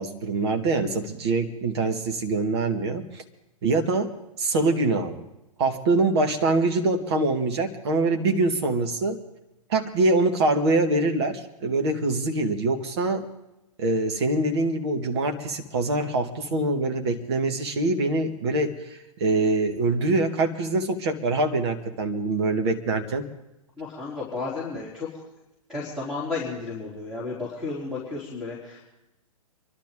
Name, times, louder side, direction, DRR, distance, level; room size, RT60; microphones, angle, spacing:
voice 1, 0.0-3.0 3.6-5.2 5.6-9.2 9.7-13.3 13.8-23.2, right 2 dB, 45° right, 5 dB, 1.9 m, -24 dB
voice 2, 23.8-25.1 25.7-28.9, left 3 dB, 5° right, -5 dB, 3.9 m, -33 dB
26.5 x 12.0 x 3.9 m, 0.91 s
figure-of-eight pair, 115°, 19 cm